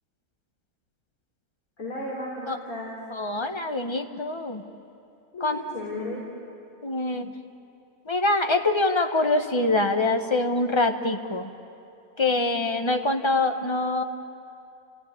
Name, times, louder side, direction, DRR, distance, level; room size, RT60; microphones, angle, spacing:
voice 1, 1.8-2.9 5.3-6.2, left 1 dB, 75° left, -5 dB, 4.2 m, -34 dB
voice 2, 3.1-4.6 5.4-5.6 6.8-7.3 8.1-11.5 12.2-14.0, left 2 dB, 20° left, 6 dB, 1.1 m, -24 dB
28.5 x 16.0 x 9.8 m, 2.7 s
omnidirectional pair, 1.5 m